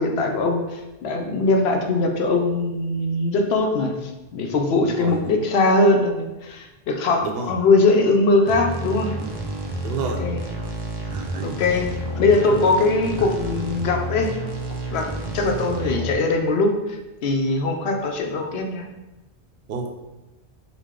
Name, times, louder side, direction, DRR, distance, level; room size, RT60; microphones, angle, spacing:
voice 1, 0.0-9.1 10.2-10.4 11.4-14.3 14.7-17.0 17.2-18.9, left 3 dB, 80° left, 3 dB, 0.8 m, -21 dB
voice 2, 4.8-5.2 7.2-7.5 9.8-10.2 11.1-11.6 12.5-12.7 13.2-13.3 19.7-19.9, right 4 dB, 70° right, 3 dB, 0.8 m, -30 dB
sound 1, 8.5-16.1, right 1 dB, 35° right, 0.4 m, -30 dB
5.0 x 2.1 x 3.6 m, 1.1 s
omnidirectional pair, 1.1 m